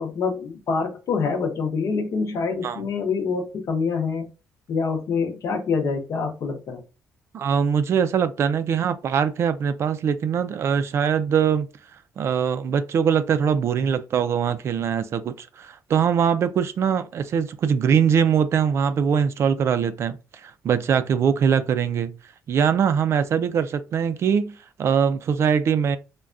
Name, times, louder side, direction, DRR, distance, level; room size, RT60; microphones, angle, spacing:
voice 1, 0.0-4.3 4.7-6.8, left 5 dB, 60° left, 0.8 m, -26 dB
voice 2, 7.3-11.7 12.2-22.2 22.5-26.0, right 7 dB, 50° right, 0.3 m, -22 dB
3.4 x 2.2 x 2.5 m
cardioid pair, 125°, 6 cm